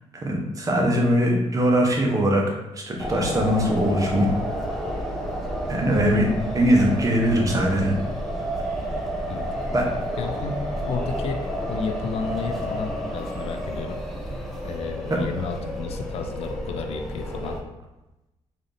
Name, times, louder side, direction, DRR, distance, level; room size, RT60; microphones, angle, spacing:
voice 1, 0.2-4.3 5.7-6.3 6.5-7.9 9.7-9.8, equal, 30° right, 0 dB, 0.8 m, -21 dB
sound 1, 3.0-17.6, equal, ahead, 0.6 m, -30 dB
voice 2, 10.2-14.0 14.6-17.6, left 5 dB, 60° left, 6 dB, 0.4 m, -32 dB
4.0 x 2.5 x 3.3 m, 0.98 s
cardioid pair, 115°, 11 cm